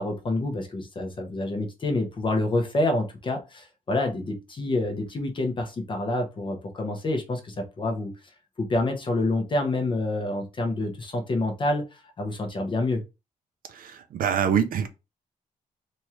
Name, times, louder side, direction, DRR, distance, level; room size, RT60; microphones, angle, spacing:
voice 1, 0.0-8.1 8.6-13.0, left 2 dB, 35° left, 0.7 m, -27 dB
voice 2, 13.7-14.9, right 8 dB, 75° right, 0.4 m, -25 dB
3.0 x 2.4 x 4.2 m
wide cardioid pair, 165°, 15 cm